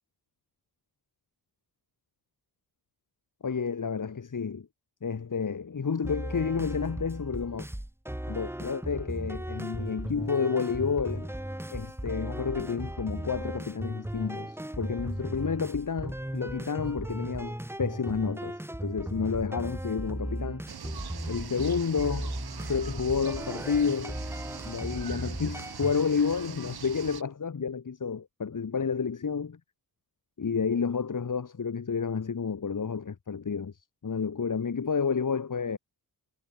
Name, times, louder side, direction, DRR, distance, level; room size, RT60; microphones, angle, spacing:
voice 1, 3.4-4.7 5.0-7.7 8.3-11.3 11.7-20.6 21.3-22.3 22.7-24.2 24.6-29.6 30.4-35.8, left 5 dB, 50° left, 5.5 m, -30 dB
sound 1, 6.0-25.9, right 1 dB, 5° right, 3.8 m, -36 dB
sound 2, 20.7-27.2, right 7 dB, 65° right, 7.9 m, -43 dB
cardioid pair, 85°, 41 cm